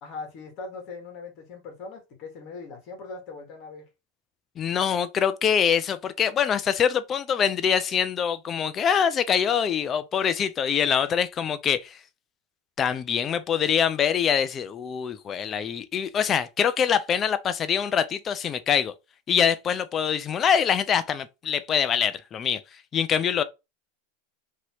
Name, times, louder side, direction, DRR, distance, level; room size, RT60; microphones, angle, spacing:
voice 1, 0.0-3.8, left 4 dB, 50° left, 1.6 m, -40 dB
voice 2, 4.6-12.0 12.8-18.9 19.3-22.6 22.9-23.4, left 8 dB, 30° left, 0.4 m, -24 dB
2.9 x 2.8 x 2.9 m
hypercardioid pair, 115°, 0 cm